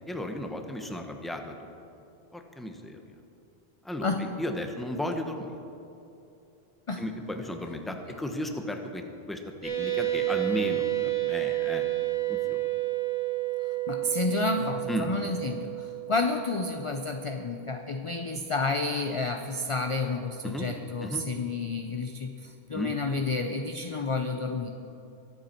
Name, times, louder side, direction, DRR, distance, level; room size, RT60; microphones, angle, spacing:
voice 1, 0.1-1.5 2.3-3.0 3.8-4.1 4.4-5.5 7.0-11.8 12.3-12.6 14.9-15.1 20.4-20.7 21.0-21.2 22.7-22.9, left 1 dB, ahead, 4 dB, 0.9 m, -34 dB
voice 2, 4.0-4.3 6.9-7.0 13.6-24.7, left 3 dB, 35° left, 5 dB, 0.6 m, -30 dB
sound 1, 9.6-17.7, right 16 dB, 65° right, 4.1 m, -31 dB
23.0 x 8.2 x 4.4 m, 2.8 s
omnidirectional pair, 1.1 m